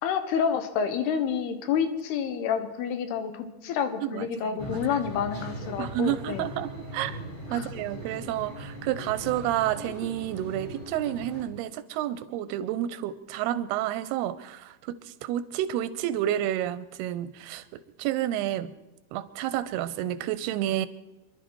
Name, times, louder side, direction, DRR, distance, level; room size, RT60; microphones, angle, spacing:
voice 1, 0.0-6.5 7.5-7.7, left 7 dB, 90° left, 9 dB, 3.2 m, -29 dB
voice 2, 4.0-4.8 5.8-7.2 7.5-17.7 18.0-18.7 19.1-20.9, right 12 dB, 90° right, 14 dB, 2.8 m, -30 dB
sound 1, 4.6-11.4, right 1 dB, 20° left, 2.0 m, -39 dB
25.5 x 11.5 x 4.6 m, 1.0 s
omnidirectional pair, 4.5 m